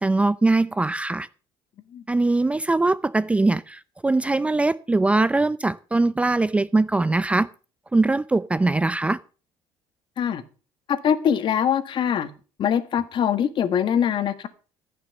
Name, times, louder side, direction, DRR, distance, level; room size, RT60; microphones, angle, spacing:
voice 1, 0.0-1.3 2.1-7.5 7.9-9.2, right 2 dB, 10° right, 0.5 m, -21 dB
voice 2, 10.9-12.3 12.6-14.5, left 8 dB, 50° left, 1.6 m, -23 dB
15.0 x 5.9 x 7.1 m
cardioid pair, 110°, 10 cm